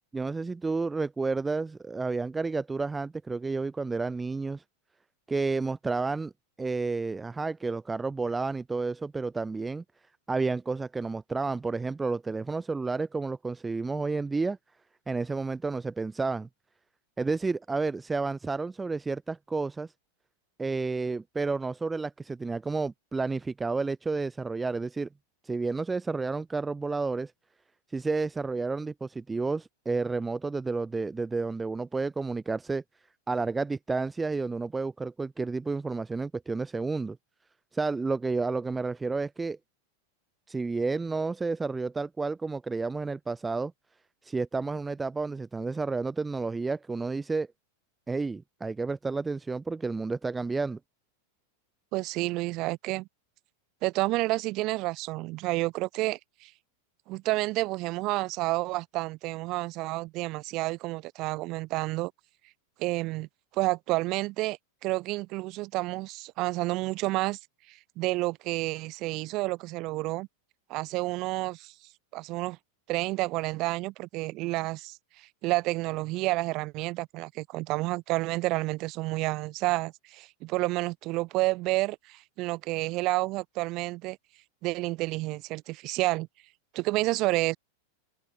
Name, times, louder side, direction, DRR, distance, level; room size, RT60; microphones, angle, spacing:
voice 1, 0.1-4.6 5.3-6.3 6.6-9.8 10.3-14.6 15.1-16.5 17.2-19.9 20.6-25.1 25.4-27.3 27.9-32.8 33.3-37.2 37.7-39.6 40.5-43.7 44.2-47.5 48.1-50.8, right 3 dB, 10° right, 1.9 m, -31 dB
voice 2, 51.9-53.1 53.8-56.5 57.1-62.1 62.8-63.3 63.5-67.4 67.7-70.3 70.7-71.7 72.1-72.6 72.9-84.2 84.6-86.3 86.7-87.6, right 21 dB, 40° right, 5.8 m, -30 dB
figure-of-eight pair, 90°, 0 cm